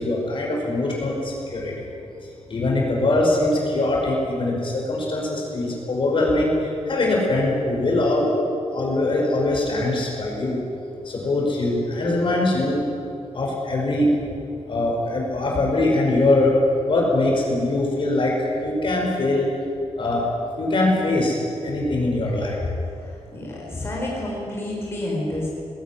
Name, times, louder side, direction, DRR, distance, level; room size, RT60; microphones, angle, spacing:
voice 1, 0.0-1.7 2.2-8.3 8.7-10.6 11.1-12.9 13.3-14.1 14.7-16.5 16.9-19.5 20.0-20.2 20.6-21.3 21.6-22.6, left 2 dB, 45° left, -2 dB, 5.5 m, -22 dB
voice 2, 23.0-25.6, left 1 dB, 20° left, -4 dB, 4.9 m, -29 dB
20.0 x 17.0 x 9.9 m, 2.6 s
wide cardioid pair, 170°, 12 cm